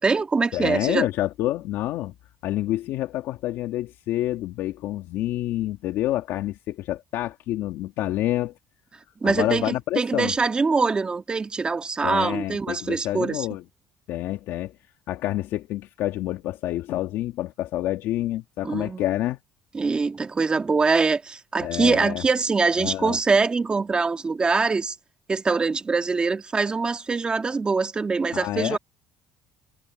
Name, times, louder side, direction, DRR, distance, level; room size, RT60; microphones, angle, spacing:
voice 1, 0.0-1.1 9.2-13.5 18.6-19.0 19.7-24.9 25.3-28.8, right 4 dB, 20° right, 1.9 m, -23 dB
voice 2, 0.5-2.1 2.4-8.5 9.2-10.3 12.0-13.6 14.1-14.7 15.1-19.4 21.6-22.2 22.8-23.2 28.3-28.8, left 14 dB, 70° left, 2.0 m, -28 dB
cardioid pair, 120°, 4 cm